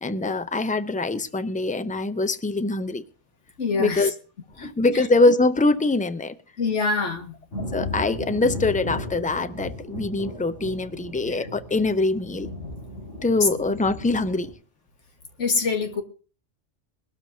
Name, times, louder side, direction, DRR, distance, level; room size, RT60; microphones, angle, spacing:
voice 1, 0.0-3.0 3.8-4.1 4.6-6.4 7.6-12.5 13.2-14.5, left 2 dB, 15° left, 0.3 m, -23 dB
voice 2, 3.6-4.1 4.6-5.0 6.6-7.4 11.4-11.5 13.4-13.5 15.4-16.0, left 4 dB, 70° left, 2.0 m, -25 dB
Thunder, 7.5-14.5, left 2 dB, 85° left, 6.4 m, -36 dB
21.5 x 12.5 x 2.8 m
omnidirectional pair, 1.3 m